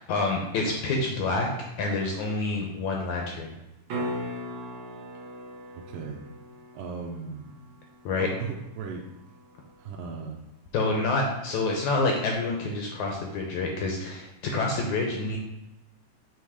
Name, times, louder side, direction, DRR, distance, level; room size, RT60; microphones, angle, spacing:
voice 1, 0.0-1.5 1.8-3.5 8.1-8.3 10.7-15.4, left 3 dB, 75° left, 0 dB, 1.9 m, -27 dB
sound 1, 3.9-9.9 14.6-14.7, equal, 65° right, 2.4 m, -39 dB
voice 2, 5.7-6.2 6.7-7.6 8.2-9.1 9.8-10.4, right 5 dB, 85° right, 0 dB, 2.3 m, -37 dB
7.1 x 3.4 x 4.8 m, 0.92 s
omnidirectional pair, 3.9 m